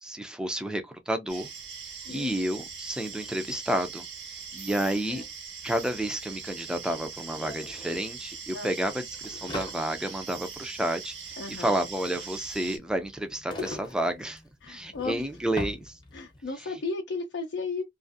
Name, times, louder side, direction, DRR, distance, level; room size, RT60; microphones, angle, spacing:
voice 1, 0.0-1.5 2.1-5.2 5.6-14.4 14.7-16.0, right 1 dB, 5° right, 0.4 m, -31 dB
sound 1, 1.3-12.8, right 6 dB, 80° right, 1.1 m, -41 dB
sound 2, 5.7-5.8 6.0-16.5, left 2 dB, 25° left, 0.7 m, -43 dB
voice 2, 11.4-11.7 14.6-15.2 16.1-17.8, left 3 dB, 70° left, 0.5 m, -34 dB
2.4 x 2.4 x 2.5 m
head